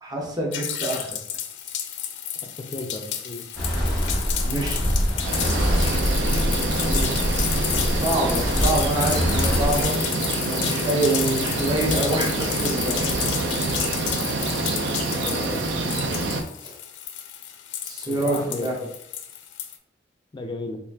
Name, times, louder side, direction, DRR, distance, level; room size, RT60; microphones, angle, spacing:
voice 1, 0.0-1.1 4.4-5.2 7.9-10.0 10.4-13.1 16.6-16.8 17.8-18.7, right 2 dB, 25° right, -2 dB, 0.7 m, -26 dB
sound 1, 0.5-19.8, left 9 dB, 85° left, 0.4 m, -31 dB
voice 2, 2.6-3.4 6.9-7.1 15.2-15.7 18.0-18.7 20.3-20.8, left 2 dB, 25° left, 4 dB, 0.4 m, -33 dB
sound 2, 3.6-9.8, equal, ahead, 0.9 m, -24 dB
sound 3, 5.2-16.4, right 2 dB, 85° right, 0.5 m, -27 dB
3.6 x 2.5 x 3.3 m, 0.77 s
head